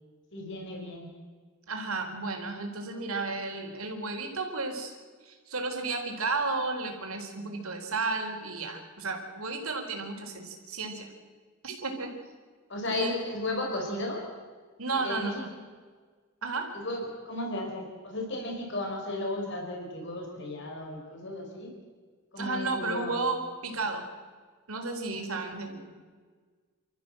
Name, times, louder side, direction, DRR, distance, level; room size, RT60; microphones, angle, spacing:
voice 1, 0.3-1.1 12.7-14.3 14.9-15.5 16.7-21.7 22.3-23.2, left 1 dB, 55° left, 0 dB, 4.7 m, -34 dB
voice 2, 1.7-4.9 5.2-11.1 11.6-12.1 12.9-13.1 14.8-15.5 16.4-16.7 22.4-24.0 24.7-25.9, right 3 dB, 85° right, 3 dB, 4.0 m, -33 dB
29.0 x 14.0 x 7.7 m, 1.5 s
head